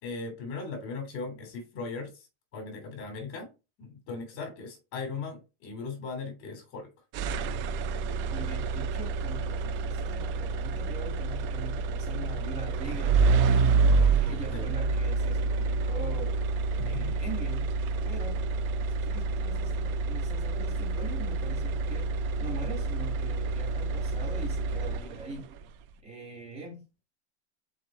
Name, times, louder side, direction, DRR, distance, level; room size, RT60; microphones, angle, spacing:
voice 1, 0.0-2.2 2.5-3.5 3.8-6.9 14.5-14.7 16.7-17.1, left 4 dB, 40° left, 3.3 m, -38 dB
sound 1, 7.1-25.4, right 4 dB, 35° right, 0.6 m, -28 dB
voice 2, 8.3-13.6 13.9-16.4 16.8-17.7 18.0-22.1 22.4-25.5 26.0-26.8, right 3 dB, 20° right, 2.7 m, -42 dB
6.4 x 4.9 x 4.5 m
supercardioid pair, 145°, 35 cm